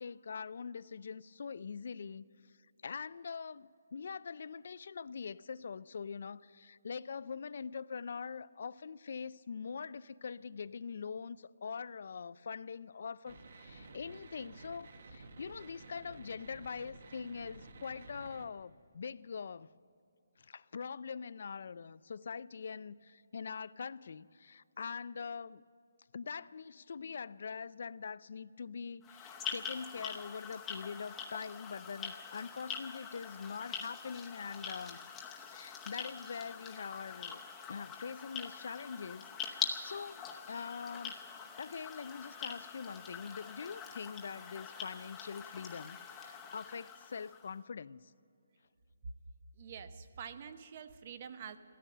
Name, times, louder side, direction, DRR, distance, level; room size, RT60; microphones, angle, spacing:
voice 1, 0.0-2.2 2.8-19.7 20.4-25.6 26.1-35.0 35.4-37.4 37.7-41.2 41.6-48.1, left 6 dB, 55° left, 0.4 m, -43 dB
sound 1, 13.2-18.5, right 3 dB, 55° right, 1.3 m, -53 dB
sound 2, 29.0-47.5, left 6 dB, 10° left, 0.8 m, -44 dB
voice 2, 49.6-51.6, right 7 dB, 35° right, 0.8 m, -47 dB
16.0 x 13.5 x 6.6 m
hypercardioid pair, 170°, 0 cm